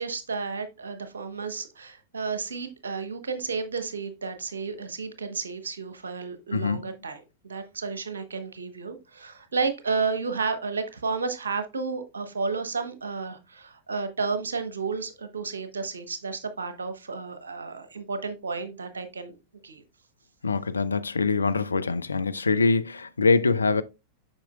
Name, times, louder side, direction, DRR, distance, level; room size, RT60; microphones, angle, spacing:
voice 1, 0.0-19.3 19.6-19.8, right 4 dB, 70° right, 0.9 m, -32 dB
voice 2, 6.5-6.9 20.4-23.8, left 4 dB, 75° left, 0.4 m, -24 dB
7.3 x 5.9 x 2.2 m
figure-of-eight pair, 90°, 0 cm